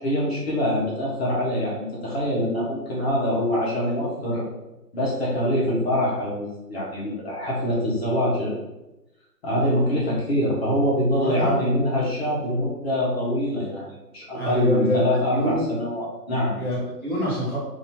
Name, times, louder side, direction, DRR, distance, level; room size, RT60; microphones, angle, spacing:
voice 1, 0.0-4.4 4.9-8.5 9.4-13.8 14.1-16.5, equal, 40° left, -6 dB, 1.2 m, -24 dB
voice 2, 11.2-11.6 14.3-15.7 16.5-17.6, equal, 10° left, -18 dB, 0.8 m, -26 dB
4.0 x 2.9 x 2.7 m, 0.98 s
figure-of-eight pair, 155°, 49 cm